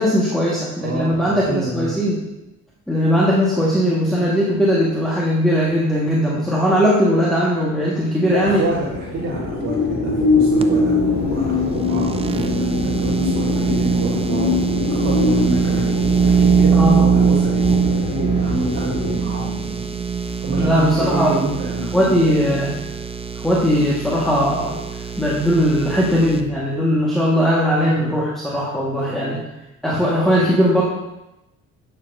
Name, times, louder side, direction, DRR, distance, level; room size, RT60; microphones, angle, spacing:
voice 1, 0.0-2.2 2.9-8.6 16.7-17.0 20.6-21.3 21.9-22.7 23.3-24.8 25.2-29.4 29.8-30.8, equal, ahead, -7 dB, 1.6 m, -19 dB
voice 2, 0.8-1.9 8.3-19.9 20.2-22.6 27.8-28.2 28.9-29.4, right 2 dB, 55° right, -6 dB, 1.7 m, -28 dB
sound 1, 8.4-19.2, left 3 dB, 65° left, 1.8 m, -23 dB
sound 2, 10.6-26.4, right 6 dB, 20° right, 0.5 m, -22 dB
10.0 x 6.8 x 2.7 m, 0.95 s
cardioid pair, 90°, 30 cm